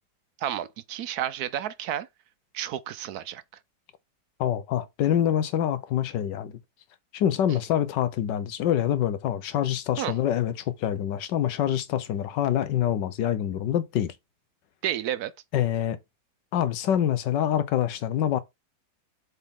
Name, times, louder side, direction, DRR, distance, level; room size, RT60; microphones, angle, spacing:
voice 1, 0.4-2.1 2.5-3.4 10.0-10.1 14.8-15.3, right 11 dB, 70° right, 1.0 m, -31 dB
voice 2, 4.4-6.5 7.1-14.1 15.5-16.0 16.5-18.4, left 10 dB, 85° left, 1.5 m, -26 dB
8.0 x 4.1 x 3.6 m
omnidirectional pair, 1.9 m